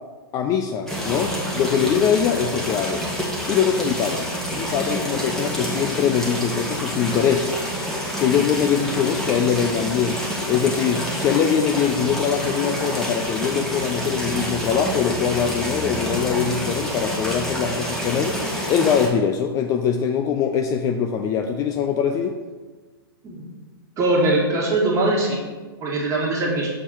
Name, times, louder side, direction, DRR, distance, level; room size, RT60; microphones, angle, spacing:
voice 1, 0.3-3.0 3.5-7.5 8.2-10.2 10.5-18.4 18.7-22.4, left 7 dB, 25° left, 5 dB, 0.4 m, -22 dB
sound 1, 0.9-19.1, equal, 5° left, 1.5 m, -28 dB
voice 2, 24.0-25.4 25.8-26.7, right 2 dB, 25° right, -2 dB, 1.6 m, -21 dB
7.0 x 4.3 x 4.6 m, 1.3 s
hypercardioid pair, 115°, 13 cm